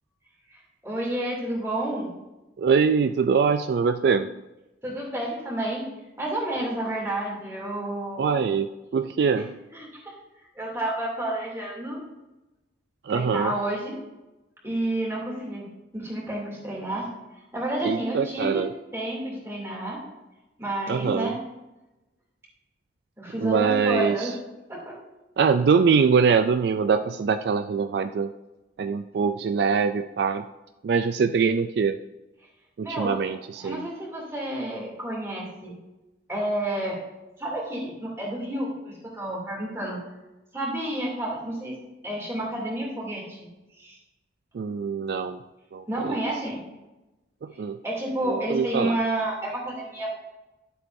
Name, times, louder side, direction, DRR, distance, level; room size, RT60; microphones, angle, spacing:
voice 1, 0.5-2.1 4.8-5.9 6.2-8.5 9.3-9.4 9.7-10.1 10.6-12.1 13.1-14.0 14.6-15.7 15.9-17.1 17.5-18.7 18.9-20.0 20.6-21.4 23.2-24.3 24.7-25.0 32.8-33.3 33.6-35.8 36.3-37.0 37.4-40.0 40.5-41.8 42.0-43.4 43.8-44.0 45.9-46.6 47.5-50.1, right 1 dB, 15° right, -4 dB, 2.7 m, -30 dB
voice 2, 2.6-4.4 8.2-9.6 13.0-13.5 17.8-18.7 20.9-21.3 23.4-24.3 25.4-28.3 28.8-30.4 30.8-32.0 32.8-33.9 44.5-45.4 45.7-46.1 47.4-47.8 48.3-49.0, right 5 dB, 60° right, 10 dB, 0.3 m, -23 dB
12.5 x 7.8 x 2.7 m, 1.0 s
head